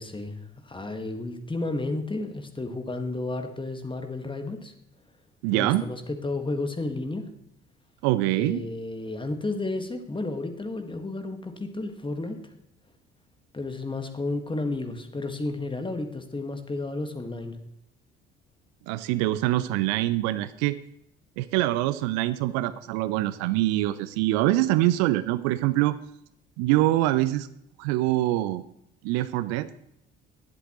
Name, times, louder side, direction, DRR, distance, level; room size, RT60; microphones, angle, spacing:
voice 1, 0.0-4.7 5.5-7.2 8.3-12.4 13.5-17.6, left 2 dB, 15° left, 6 dB, 1.6 m, -32 dB
voice 2, 5.4-5.8 8.0-8.6 18.9-20.8 21.4-26.0 26.6-27.5 27.8-28.6 29.0-29.7, right 16 dB, 60° right, 15 dB, 0.5 m, -24 dB
19.5 x 8.0 x 3.0 m, 0.77 s
figure-of-eight pair, 50°, 31 cm